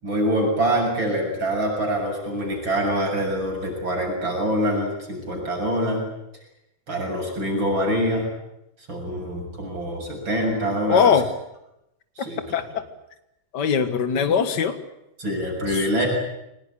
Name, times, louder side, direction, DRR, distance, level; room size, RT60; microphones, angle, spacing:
voice 1, 0.0-6.0 6.9-8.3 8.9-11.2 12.2-12.6 15.2-16.1, equal, 70° right, 0 dB, 8.0 m, -25 dB
voice 2, 10.9-11.3 12.5-12.8 13.5-14.8 15.7-15.9, left 7 dB, 55° left, 10 dB, 2.3 m, -21 dB
24.0 x 19.5 x 10.0 m, 0.86 s
omnidirectional pair, 2.2 m